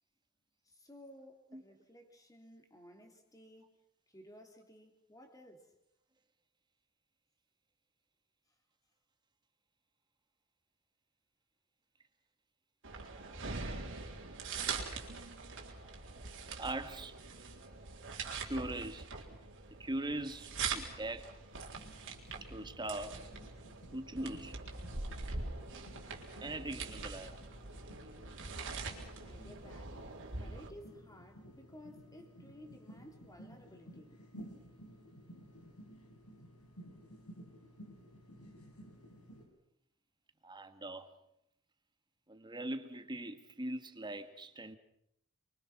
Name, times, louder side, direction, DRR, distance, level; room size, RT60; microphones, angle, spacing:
voice 1, 0.7-3.7 4.1-5.7 29.2-30.0 30.4-34.2, left 1 dB, 15° left, 3.5 m, -56 dB
sound 1, 12.8-30.7, right 4 dB, 60° right, 3.9 m, -43 dB
voice 2, 16.6-17.2 18.4-19.1 19.8-21.3 22.5-23.2 23.9-24.6 26.4-27.3 40.4-41.1 42.3-44.8, right 1 dB, 20° right, 1.6 m, -41 dB
sound 2, 21.5-39.5, equal, 85° left, 6.3 m, -55 dB
29.5 x 23.5 x 6.0 m
head